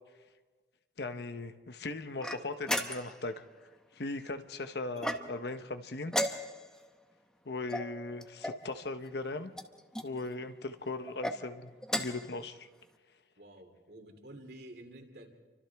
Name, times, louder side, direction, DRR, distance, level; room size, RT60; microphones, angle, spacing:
voice 1, 1.0-3.4 3.9-6.1 7.5-9.5 10.0-12.7, left 2 dB, 70° left, 9 dB, 1.0 m, -38 dB
sound 1, 2.2-3.3 5.0-5.6 6.1-6.8 7.7-8.7 9.5-10.1 11.0-11.4 11.8-12.3, equal, 5° left, 0.9 m, -35 dB
voice 2, 13.4-15.3, right 1 dB, 65° right, 2 dB, 2.9 m, -50 dB
29.5 x 25.0 x 3.5 m, 1.4 s
head